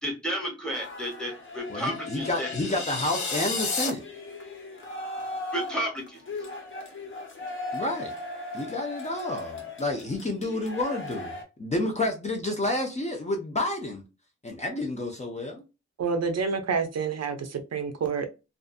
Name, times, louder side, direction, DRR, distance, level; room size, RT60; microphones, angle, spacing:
voice 1, 0.0-2.5 5.5-6.2, equal, ahead, 1.1 m, -32 dB
sound 1, 0.7-11.4, left 2 dB, 45° left, 0.9 m, -38 dB
voice 2, 1.7-4.0 7.7-8.1 8.5-11.3 11.6-14.0 14.4-15.6, left 1 dB, 25° left, 0.5 m, -30 dB
sound 2, 1.9-3.9, left 4 dB, 75° left, 0.7 m, -32 dB
voice 3, 16.0-18.3, right 5 dB, 60° right, 0.5 m, -28 dB
2.6 x 2.4 x 2.4 m
wide cardioid pair, 135°, 29 cm